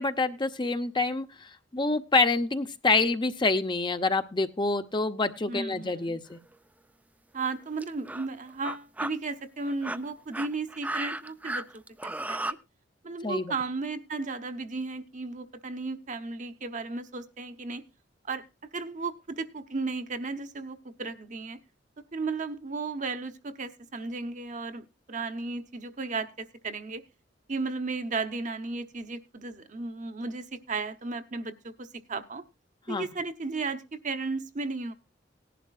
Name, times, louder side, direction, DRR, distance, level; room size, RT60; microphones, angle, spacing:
voice 1, 0.0-6.4 13.2-13.5 32.9-33.1, left 3 dB, 25° left, 9 dB, 0.7 m, -27 dB
voice 2, 5.5-6.2 7.3-12.6 13.0-17.8 18.3-21.6 22.1-27.0 27.5-32.4 32.9-34.9, right 3 dB, 45° right, 9 dB, 0.9 m, -35 dB
sound 1, 6.3-6.5 7.4-7.5 7.8-8.3 8.6-9.1 9.7-12.5, right 2 dB, 10° right, 0.5 m, -34 dB
18.0 x 11.0 x 2.4 m, 0.27 s
head